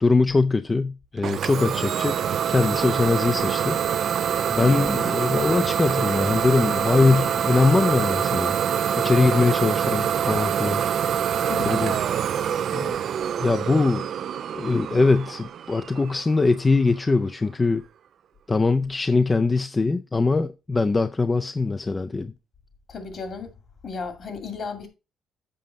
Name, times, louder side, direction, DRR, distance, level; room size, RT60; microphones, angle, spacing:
voice 1, 0.0-2.2 2.5-3.8 4.5-8.5 9.0-10.8 11.7-12.0 12.7-13.0 13.4-14.1 14.5-17.8 18.5-22.3, left 3 dB, 25° left, 0.4 m, -22 dB
Idling / Domestic sounds home sounds, 1.2-16.8, right 9 dB, 65° right, 0.4 m, -25 dB
voice 2, 4.6-4.9 11.5-11.8 22.9-23.5 23.8-24.9, left 5 dB, 55° left, 2.4 m, -34 dB
7.7 x 5.1 x 5.3 m
cardioid pair, 90°, 0 cm